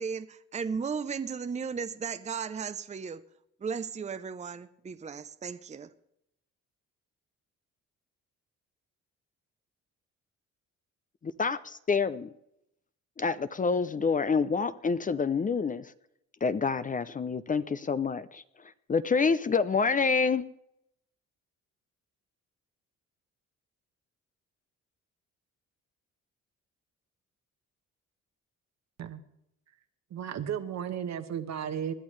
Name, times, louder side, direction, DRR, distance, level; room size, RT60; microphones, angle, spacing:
voice 1, 0.0-3.2 3.6-5.9, right 6 dB, 25° right, 0.6 m, -35 dB
voice 2, 11.2-12.3 13.2-15.9 16.4-18.4 18.9-20.5, left 5 dB, 25° left, 0.5 m, -27 dB
voice 3, 30.1-31.9, right 8 dB, 65° right, 1.2 m, -34 dB
20.0 x 11.5 x 3.3 m
cardioid pair, 90°, 30 cm